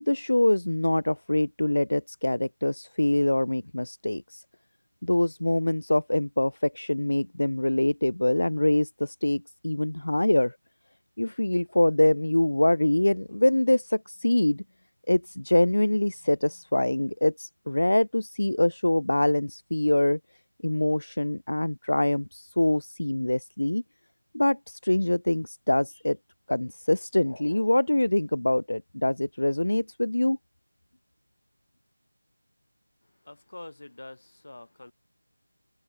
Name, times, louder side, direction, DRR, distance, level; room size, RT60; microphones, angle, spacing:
voice 1, 0.0-4.4 5.0-10.6 11.2-14.6 15.1-20.2 20.6-23.8 24.3-26.2 26.5-30.4, left 1 dB, 80° left, 0.8 m, -24 dB
voice 2, 33.2-34.9, left 2 dB, 50° left, 3.0 m, -45 dB
figure-of-eight pair, 180°, 0 cm